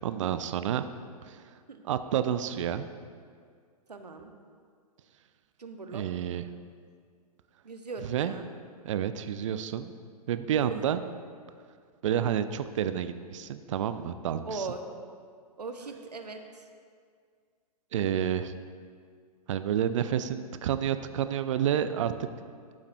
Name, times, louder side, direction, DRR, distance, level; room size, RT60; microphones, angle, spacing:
voice 1, 0.0-0.8 1.2-1.4 1.8-2.9 5.9-6.4 8.0-8.3 8.8-9.9 10.3-11.0 12.0-14.7 17.9-18.5 19.5-22.1, right 9 dB, 50° right, 11 dB, 0.4 m, -29 dB
voice 2, 3.9-4.3 5.6-6.0 7.6-8.5 14.5-14.8 15.6-16.6, right 3 dB, 85° right, 6 dB, 0.7 m, -39 dB
11.5 x 7.1 x 2.2 m, 2.1 s
figure-of-eight pair, 115°, 20 cm